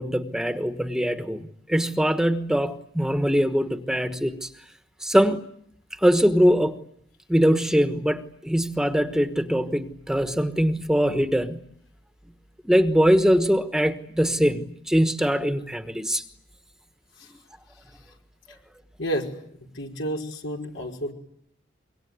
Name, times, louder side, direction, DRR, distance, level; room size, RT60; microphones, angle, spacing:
voice 1, 0.0-4.5 5.0-5.4 6.0-6.8 7.3-11.6 12.6-16.2, equal, 5° right, 1.2 m, -22 dB
voice 2, 19.0-19.3 19.7-21.1, equal, 90° left, 5.2 m, -30 dB
25.5 x 23.0 x 9.5 m
head